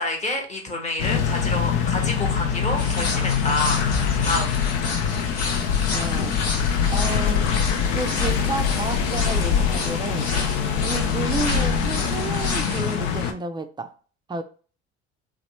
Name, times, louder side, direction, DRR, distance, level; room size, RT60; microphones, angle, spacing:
voice 1, 0.0-3.8 4.2-4.6, left 2 dB, 20° left, 2 dB, 1.1 m, -28 dB
sound 1, 1.0-13.3, left 7 dB, 75° left, 0.5 m, -23 dB
sound 2, 2.8-12.9, left 3 dB, 45° left, 1.2 m, -32 dB
voice 2, 5.9-6.4 6.9-7.5 7.9-10.3 10.8-13.9 14.3-14.4, right 3 dB, 15° right, 8 dB, 0.4 m, -31 dB
2.9 x 2.1 x 3.0 m, 0.39 s
hypercardioid pair, 60°, 34 cm